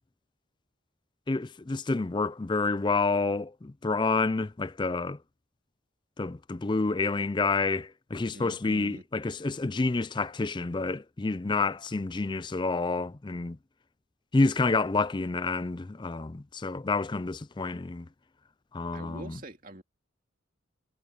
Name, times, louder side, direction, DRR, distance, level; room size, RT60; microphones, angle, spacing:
voice 1, 1.3-5.2 6.2-13.6 14.3-18.1 18.7-19.4, left 3 dB, 20° left, 0.4 m, -28 dB
voice 2, 8.3-9.0 18.9-19.8, right 1 dB, 45° right, 2.5 m, -44 dB
head